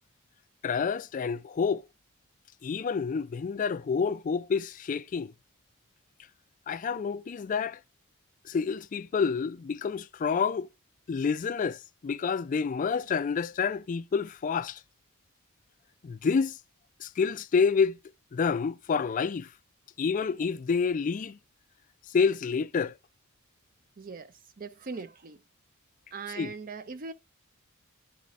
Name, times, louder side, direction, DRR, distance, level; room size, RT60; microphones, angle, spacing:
voice 1, 0.6-1.9 2.6-5.3 6.7-7.8 8.4-10.7 11.1-14.8 16.0-16.6 17.0-18.0 18.3-19.5 20.0-21.4 22.1-22.9 26.4-26.5, left 5 dB, 35° left, 0.3 m, -28 dB
voice 2, 24.0-25.4 26.1-27.1, right 4 dB, 40° right, 0.6 m, -40 dB
9.7 x 4.1 x 2.5 m
head